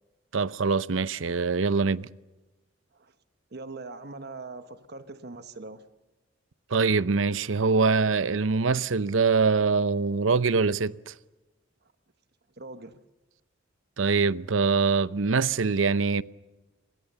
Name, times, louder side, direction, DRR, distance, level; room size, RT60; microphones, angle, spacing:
voice 1, 0.3-2.1 6.7-11.1 14.0-16.2, right 4 dB, 85° right, 0.7 m, -24 dB
voice 2, 3.5-5.8 12.6-13.0, right 3 dB, 55° right, 1.2 m, -41 dB
29.0 x 22.5 x 6.8 m
head